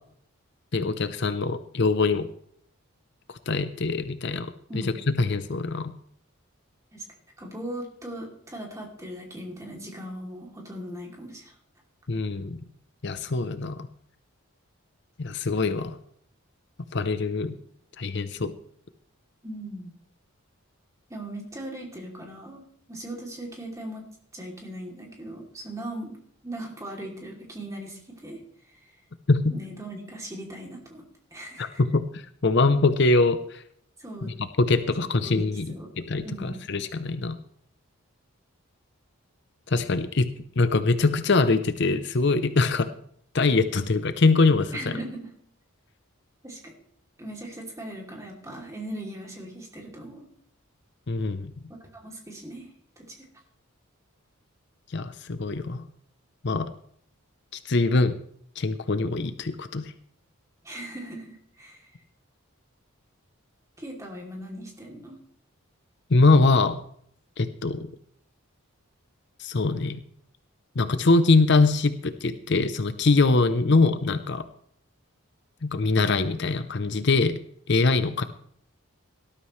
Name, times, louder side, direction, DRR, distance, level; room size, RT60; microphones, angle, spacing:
voice 1, 0.7-2.3 3.3-4.5 5.1-5.9 12.1-12.6 13.0-13.9 15.2-16.0 16.9-17.6 18.0-18.5 29.3-29.5 31.6-33.6 34.6-35.7 36.1-37.4 39.7-40.3 40.6-42.9 43.3-44.9 51.1-51.5 54.9-55.9 56.4-56.7 57.5-58.1 58.6-59.9 66.1-66.8 67.4-67.9 69.4-70.0 70.8-74.4 75.6-77.4 77.7-78.2, left 3 dB, 55° left, 11 dB, 0.7 m, -23 dB
voice 2, 4.7-5.0 6.9-7.0 7.4-11.6 19.4-19.9 21.1-22.6 22.9-26.2 26.4-28.4 29.5-31.0 31.3-31.8 34.0-34.3 35.2-35.9 36.2-36.6 44.7-45.3 46.4-46.7 47.2-50.3 51.7-52.7 53.0-53.2 60.6-61.9 63.8-65.2 73.6-74.2, right 1 dB, 15° right, 0 dB, 2.9 m, -39 dB
18.5 x 12.5 x 3.2 m, 0.65 s
head